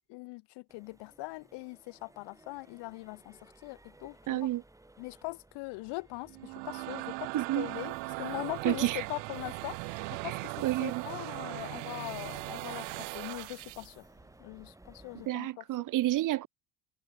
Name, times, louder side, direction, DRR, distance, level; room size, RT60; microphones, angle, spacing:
voice 1, 0.1-4.5 5.0-14.1 14.4-15.6, left 26 dB, 70° left, 1.9 m, -41 dB
Accelerating revving vroom, 0.7-15.3, right 2 dB, 5° right, 5.5 m, -58 dB
voice 2, 4.3-4.6 7.3-7.7 8.6-9.1 10.2-10.3 10.6-11.0 15.3-16.5, right 15 dB, 45° right, 0.9 m, -30 dB
sound 1, 6.2-14.0, right 40 dB or more, 80° right, 1.9 m, -39 dB
supercardioid pair, 115°, 44 cm